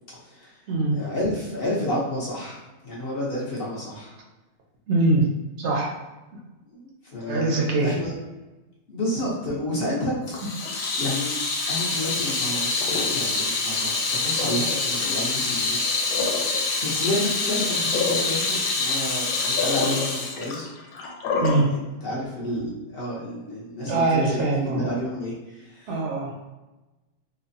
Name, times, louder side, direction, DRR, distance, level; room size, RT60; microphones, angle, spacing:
voice 1, 0.2-0.6 0.9-4.1 6.7-8.1 8.9-11.3 11.7-15.8 16.8-20.7 22.0-26.0, left 1 dB, 55° left, -5 dB, 0.6 m, -30 dB
voice 2, 4.9-5.3 5.6-6.0 7.3-7.9 21.4-21.7 23.9-24.8 25.9-26.3, right 2 dB, 70° right, -1 dB, 0.6 m, -22 dB
Water tap faucet / Sink (filling or washing), 10.3-21.6, left 3 dB, 75° left, 1.1 m, -25 dB
3.1 x 2.0 x 2.6 m, 1.1 s
omnidirectional pair, 1.6 m